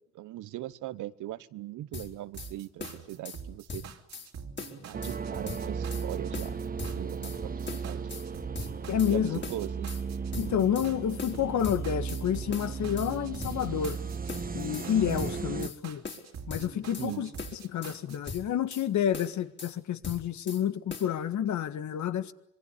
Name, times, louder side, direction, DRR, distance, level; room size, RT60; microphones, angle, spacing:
voice 1, 0.1-3.8 4.7-8.0 9.0-9.9 17.0-17.2, right 15 dB, 85° right, 1.1 m, -40 dB
sound 1, 1.9-2.5 2.8-3.4 3.7-4.3 4.6-5.2 5.5-6.1 6.3-7.4 7.7-8.3 8.5-9.2 9.4-10.0 10.3-10.9 11.2-12.2 12.5-13.1 13.4-14.0 14.3-14.9 15.2-15.8 16.0-17.1 17.4-18.0 18.3-18.9 19.1-19.7 20.0-20.6 20.9-21.1, left 4 dB, 35° left, 4.7 m, -41 dB
sound 2, 2.3-18.3, right 6 dB, 60° right, 3.0 m, -45 dB
sound 3, 4.9-15.7, right 5 dB, 30° right, 1.2 m, -36 dB
voice 2, 8.9-9.4 10.4-14.0 14.5-16.0 16.5-22.3, left 9 dB, 70° left, 1.8 m, -29 dB
26.0 x 23.0 x 9.9 m
cardioid pair, 90°, 30 cm